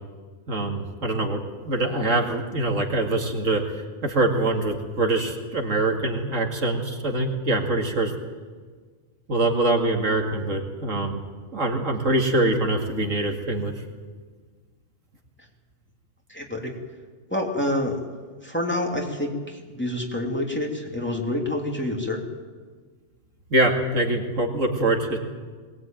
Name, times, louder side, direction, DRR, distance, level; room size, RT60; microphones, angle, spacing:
voice 1, 0.5-8.1 9.3-11.2 11.5-13.7 23.5-25.2, right 2 dB, 70° right, 2 dB, 2.6 m, -24 dB
voice 2, 16.3-16.8 17.3-18.0 18.4-22.2, left 1 dB, 10° left, -1 dB, 3.2 m, -27 dB
21.5 x 19.0 x 9.2 m, 1.5 s
omnidirectional pair, 1.4 m